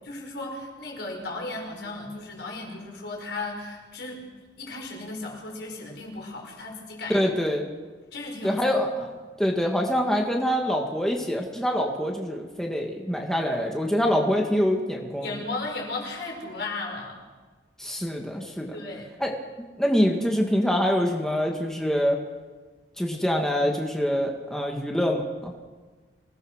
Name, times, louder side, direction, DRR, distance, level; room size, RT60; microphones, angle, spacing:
voice 1, 0.0-4.2 4.6-7.2 8.1-8.6 9.0-9.1 15.2-17.2 18.7-19.1, left 2 dB, 65° left, 0 dB, 6.0 m, -35 dB
voice 2, 7.1-7.7 8.4-9.1 9.4-15.3 17.8-18.8 19.2-19.3 19.8-22.2 23.0-25.5, equal, 5° left, 0 dB, 2.0 m, -25 dB
26.0 x 18.0 x 6.4 m, 1.3 s
head